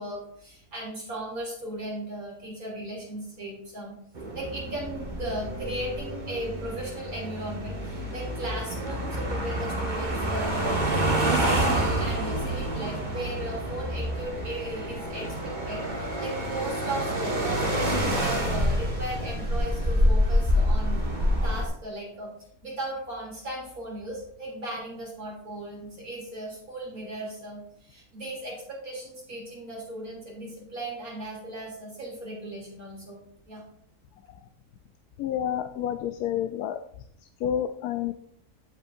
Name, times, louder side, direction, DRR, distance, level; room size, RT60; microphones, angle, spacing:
voice 1, 0.0-3.9 4.3-21.1 21.4-22.3 22.6-33.2 33.5-33.6, right 1 dB, 70° right, -4 dB, 3.8 m, -37 dB
sound 1, 4.1-21.7, equal, 30° right, 1.5 m, -27 dB
voice 2, 35.2-36.8 37.4-38.1, left 10 dB, 90° left, 8 dB, 1.1 m, -29 dB
15.5 x 5.3 x 2.7 m, 0.68 s
omnidirectional pair, 1.6 m